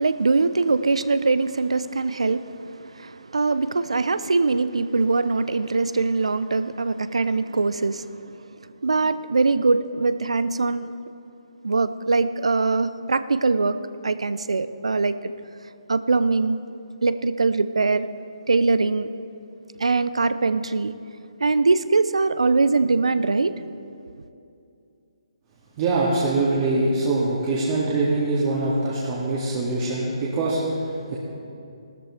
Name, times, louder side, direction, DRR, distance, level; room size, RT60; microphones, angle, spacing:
voice 1, 0.0-10.9 11.6-13.8 14.0-15.3 15.9-16.6 17.0-18.1 18.5-19.1 19.8-20.9 21.4-23.7, right 3 dB, 80° right, 13 dB, 0.5 m, -22 dB
voice 2, 25.8-31.2, right 2 dB, 35° right, -7 dB, 2.1 m, -23 dB
17.0 x 13.0 x 3.3 m, 2.6 s
figure-of-eight pair, 145°, 3 cm